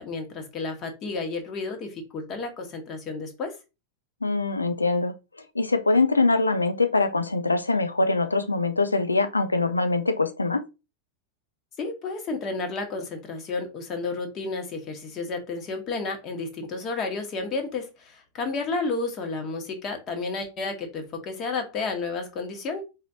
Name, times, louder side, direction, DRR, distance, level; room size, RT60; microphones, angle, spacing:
voice 1, 0.0-3.5 11.8-22.8, left 3 dB, 30° left, 1.3 m, -31 dB
voice 2, 4.2-5.2 5.5-10.6, left 3 dB, 80° left, 0.6 m, -23 dB
4.3 x 4.0 x 2.8 m
figure-of-eight pair, 90°, 0 cm